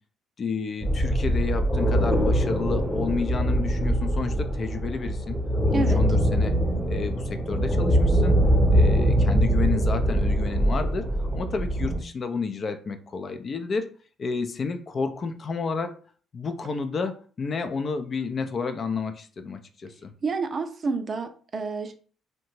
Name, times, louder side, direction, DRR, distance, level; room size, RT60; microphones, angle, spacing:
voice 1, 0.4-5.4 5.7-6.5 6.9-8.4 8.7-13.9 14.2-15.9 16.3-20.1, left 4 dB, 45° left, 8 dB, 0.4 m, -31 dB
sound 1, 0.8-12.0, equal, 10° left, 0.8 m, -23 dB
voice 2, 20.2-21.9, right 4 dB, 45° right, 8 dB, 0.4 m, -29 dB
2.7 x 2.1 x 3.0 m, 0.40 s
hypercardioid pair, 50°, 0 cm